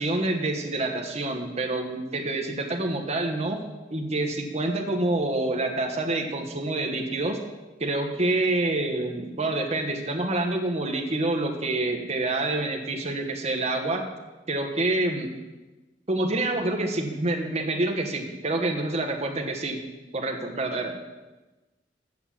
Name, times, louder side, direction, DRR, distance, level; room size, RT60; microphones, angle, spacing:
voice 1, 0.0-3.6 3.9-7.4 7.8-14.0 14.5-15.3 16.1-19.9 20.1-21.0, right 2 dB, 40° right, 2 dB, 1.2 m, -27 dB
8.0 x 6.8 x 7.3 m, 1.1 s
head